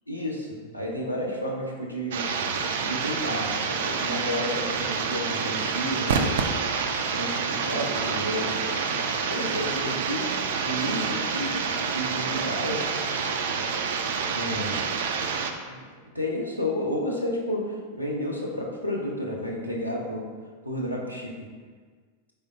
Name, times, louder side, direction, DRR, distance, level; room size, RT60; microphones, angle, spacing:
voice 1, 0.1-2.3 2.7-6.4 7.1-8.6 8.9-12.8 14.3-14.9 15.7-15.9 16.1-20.2 20.6-21.5, equal, 90° left, -2 dB, 0.6 m, -31 dB
sound 1, 2.1-15.5, right 5 dB, 60° right, 0.3 m, -28 dB
4.2 x 3.4 x 2.6 m, 1.5 s
figure-of-eight pair, 90°, 0 cm